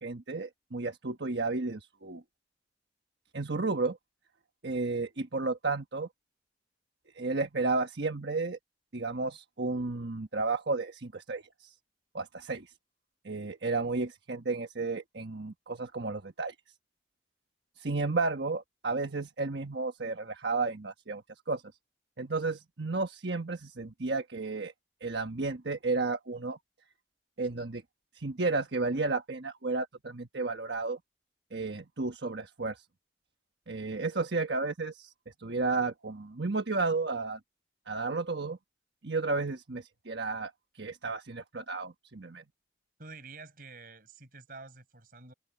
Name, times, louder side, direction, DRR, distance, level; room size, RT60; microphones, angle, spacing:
voice 1, 0.0-2.2 3.3-4.0 4.6-6.1 7.1-8.6 8.9-11.7 12.1-12.7 13.2-16.5 17.8-21.2 21.5-21.6 22.2-24.7 25.0-26.6 27.4-27.8 28.1-31.0 31.5-32.8 33.7-37.4 37.9-38.6 39.0-42.4, right 3 dB, 70° right, 1.2 m, -32 dB
voice 2, 43.0-45.3, right 3 dB, 50° right, 5.6 m, -48 dB
head